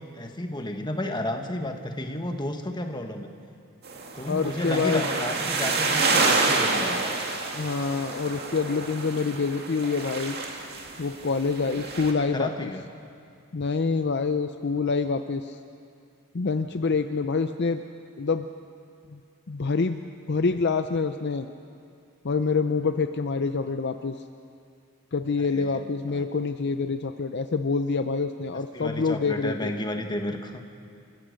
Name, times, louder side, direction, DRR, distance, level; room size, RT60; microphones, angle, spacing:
voice 1, 0.1-3.3 4.2-7.1 11.7-11.8 12.2-12.8 25.4-25.8 26.1-26.2 28.7-30.6, left 1 dB, 20° left, 5 dB, 1.3 m, -32 dB
sound 1, 3.8-12.1, right 3 dB, 45° right, 2.1 m, -28 dB
voice 2, 4.3-5.1 7.5-10.4 11.0-12.7 13.5-15.6 16.3-17.8 18.2-18.5 19.1-19.2 19.5-20.0 20.3-21.5 22.2-24.2 25.1-29.7, left 4 dB, 50° left, 8 dB, 0.5 m, -26 dB
28.5 x 15.5 x 6.4 m, 2.4 s
head